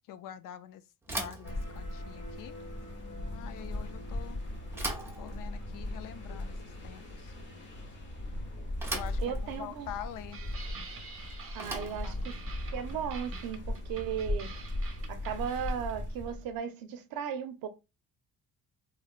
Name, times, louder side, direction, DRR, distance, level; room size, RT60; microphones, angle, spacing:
voice 1, 0.0-2.5 3.3-4.4 5.2-7.3 8.9-10.4 11.7-12.6, left 10 dB, 65° left, 0.5 m, -46 dB
Bicycle / Thump thud, 1.0-14.1, right 2 dB, 5° right, 0.6 m, -43 dB
sound 1, 1.4-16.6, left 1 dB, 30° left, 0.9 m, -38 dB
voice 2, 9.2-9.9 11.5-12.4 12.7-14.5 15.1-17.7, right 8 dB, 75° right, 0.6 m, -36 dB
sound 2, 10.3-16.0, right 5 dB, 40° right, 0.7 m, -48 dB
3.0 x 2.7 x 2.4 m
cardioid pair, 110°, 35 cm